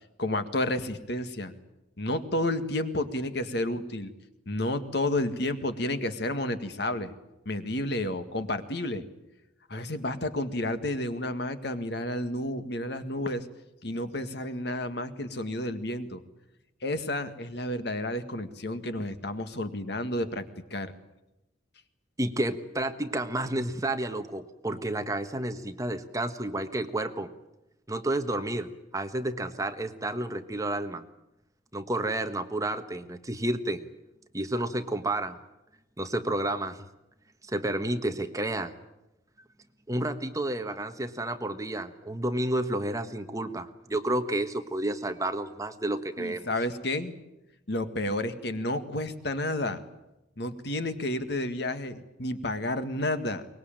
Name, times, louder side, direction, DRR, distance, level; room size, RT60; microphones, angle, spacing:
voice 1, 0.2-1.5 2.0-4.1 4.5-7.1 7.5-9.1 9.7-13.5 13.8-16.2 16.8-20.5 20.7-20.9 46.2-47.1 47.7-49.8 50.4-53.5, left 1 dB, 60° left, 9 dB, 1.9 m, -31 dB
voice 2, 22.2-27.3 27.9-31.0 31.7-34.0 34.3-35.4 36.0-36.9 37.5-38.8 39.9-46.5, right 1 dB, 20° right, 8 dB, 1.4 m, -31 dB
23.5 x 20.5 x 9.0 m, 0.93 s
head